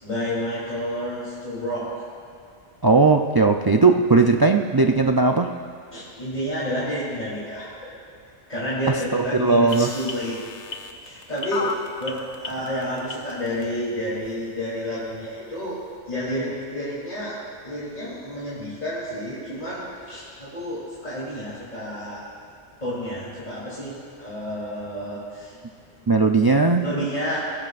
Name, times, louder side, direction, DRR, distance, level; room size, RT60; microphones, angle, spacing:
voice 1, 0.0-2.0 5.9-8.0 8.5-10.4 11.0-22.3 22.8-25.6 26.8-27.4, equal, 35° left, -9 dB, 3.4 m, -30 dB
voice 2, 2.8-5.5 9.1-9.9 26.1-26.8, right 3 dB, 35° right, 3 dB, 0.4 m, -18 dB
sound 1, 9.7-13.6 14.2-14.3, left 4 dB, 75° left, 1.3 m, -32 dB
27.0 x 17.0 x 2.5 m, 2.2 s
omnidirectional pair, 1.2 m